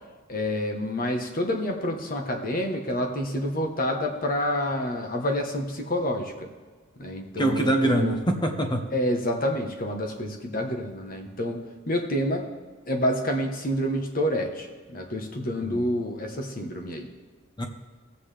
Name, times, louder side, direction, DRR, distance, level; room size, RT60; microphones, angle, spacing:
voice 1, 0.3-6.5 7.0-8.2 8.9-11.6 11.9-12.5 12.9-17.1, equal, 45° left, 4 dB, 1.2 m, -28 dB
voice 2, 7.4-8.8 15.6-15.8 17.6-17.7, right 1 dB, 20° left, 5 dB, 0.9 m, -24 dB
17.0 x 7.6 x 3.4 m, 1.4 s
head